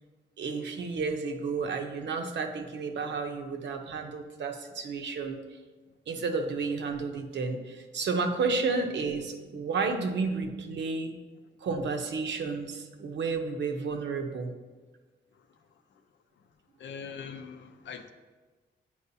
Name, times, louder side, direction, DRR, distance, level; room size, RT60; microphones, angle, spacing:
voice 1, 0.4-5.4 6.1-11.1 11.6-14.5 17.1-17.2, right 4 dB, 70° right, 5 dB, 0.7 m, -31 dB
voice 2, 16.8-18.1, left 6 dB, 80° left, 8 dB, 0.5 m, -42 dB
8.2 x 4.8 x 2.7 m, 1.3 s
cardioid pair, 105°, 19 cm